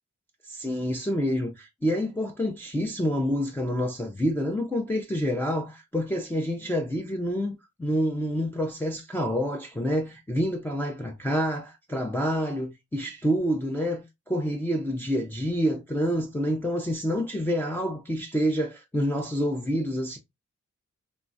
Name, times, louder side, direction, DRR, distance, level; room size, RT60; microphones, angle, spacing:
voice 1, 0.5-20.2, equal, 5° left, 0.4 m, -28 dB
3.1 x 2.2 x 2.5 m
wide cardioid pair, 135°, 30 cm